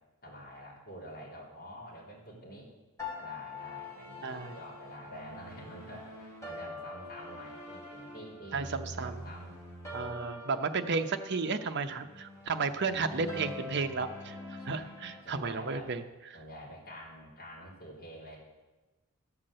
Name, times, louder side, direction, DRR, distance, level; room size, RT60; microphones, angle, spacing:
voice 1, 0.2-2.7 3.2-8.8 9.0-9.5 12.7-13.1 14.6-15.9 16.3-18.4, equal, 45° left, -4 dB, 3.5 m, -48 dB
sound 1, 3.0-15.2, left 2 dB, 15° left, 3.1 m, -44 dB
voice 2, 4.2-4.5 8.5-9.2 9.9-14.4 14.6-16.0, right 4 dB, 50° right, 8 dB, 0.7 m, -33 dB
13.0 x 5.9 x 7.7 m, 1.1 s
head